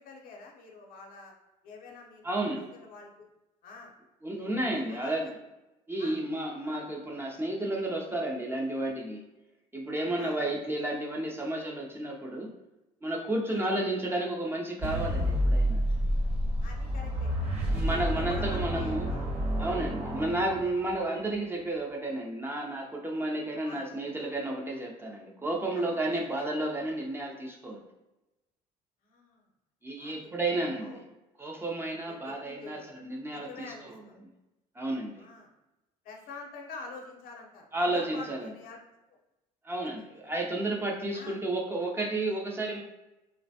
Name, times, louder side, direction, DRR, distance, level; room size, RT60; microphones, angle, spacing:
voice 1, 0.0-1.3 1.6-3.3 3.6-3.9 4.7-5.3 6.0-6.1 6.6-6.9 10.1-10.4 13.5-13.7 16.6-17.3 17.9-19.2 20.3-20.4 23.6-23.9 25.7-26.3 29.0-29.4 30.0-30.1 30.8-31.0 31.9-32.9 33.3-34.2 35.2-35.5 36.0-38.8 39.8-40.1 41.1-41.4, left 3 dB, 70° left, 0 dB, 0.7 m, -47 dB
voice 2, 2.2-2.7 4.2-5.3 5.9-9.2 9.7-12.5 13.0-15.9 17.7-19.1 19.6-27.8 29.8-31.0 31.4-33.9 34.8-35.2 37.7-38.5 39.6-42.8, right 1 dB, 15° right, -1 dB, 0.5 m, -32 dB
sound 1, 14.8-21.0, equal, 40° right, 1.1 m, -29 dB
3.1 x 2.1 x 2.7 m, 0.99 s
cardioid pair, 95°, 15 cm